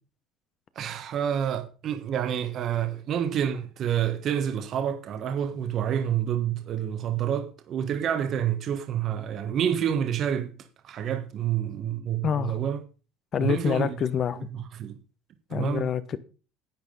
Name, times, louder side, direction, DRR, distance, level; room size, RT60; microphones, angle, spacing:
voice 1, 0.7-10.6 10.8-12.8 13.4-14.0 14.5-14.9 15.5-15.9, right 9 dB, 45° right, 1.4 m, -28 dB
voice 2, 12.2-12.6 13.3-14.5 15.5-16.2, left 8 dB, 40° left, 1.0 m, -27 dB
10.5 x 8.7 x 5.4 m
cardioid pair, 130°, 0 cm